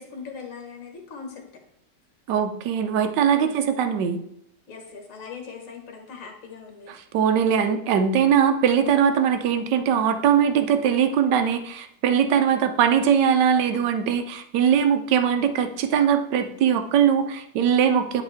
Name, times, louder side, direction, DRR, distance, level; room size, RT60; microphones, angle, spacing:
voice 1, 0.0-1.4 3.4-3.6 4.7-6.9, left 5 dB, 50° left, 3 dB, 1.6 m, -40 dB
voice 2, 2.3-4.2 7.1-18.2, right 8 dB, 75° right, 8 dB, 1.3 m, -21 dB
10.5 x 3.8 x 3.4 m, 0.78 s
omnidirectional pair, 1.9 m